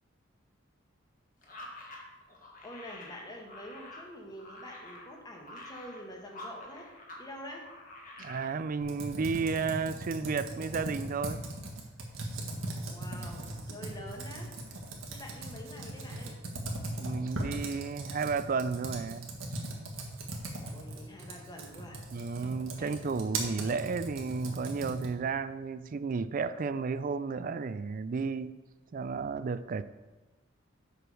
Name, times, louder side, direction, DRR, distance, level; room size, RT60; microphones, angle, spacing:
sound 1, 1.4-7.2 7.5-8.5, left 1 dB, 45° left, 1.6 m, -48 dB
voice 1, 2.6-7.7 12.8-14.5 15.1-16.4 20.5-22.0 22.8-22.9, equal, 20° left, 1.4 m, -46 dB
voice 2, 8.2-11.4 17.0-19.3 22.1-28.5 28.9-29.8, right 4 dB, 45° right, 0.4 m, -33 dB
Computer keyboard, 8.8-25.2, right 2 dB, 85° right, 1.6 m, -39 dB
7.7 x 5.0 x 6.3 m
head